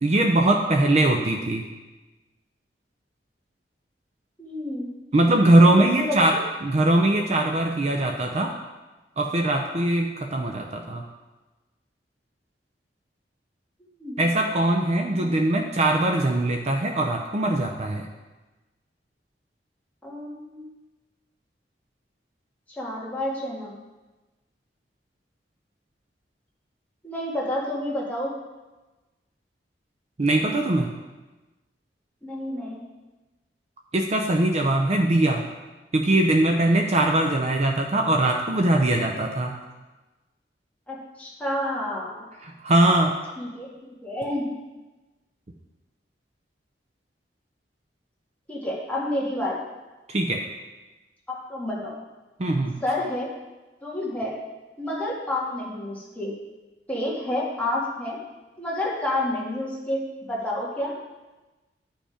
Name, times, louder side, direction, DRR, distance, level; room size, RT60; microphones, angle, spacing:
voice 1, 0.0-1.6 5.1-8.6 9.2-11.0 14.2-18.1 30.2-30.9 33.9-35.4 35.9-39.6 42.4-43.2 50.1-50.4 52.4-52.8, right 1 dB, 40° right, 3 dB, 0.6 m, -21 dB
voice 2, 4.4-4.9 5.8-6.4 14.0-14.2 15.2-15.3 20.0-20.7 22.8-23.8 27.0-28.3 32.2-32.8 40.9-42.2 43.4-44.5 48.5-49.6 51.3-52.0 52.8-53.3 53.8-54.3 54.8-56.3 56.9-58.2 58.6-60.9, left 1 dB, 10° left, -5 dB, 2.0 m, -29 dB
10.5 x 5.2 x 5.0 m, 1.1 s
head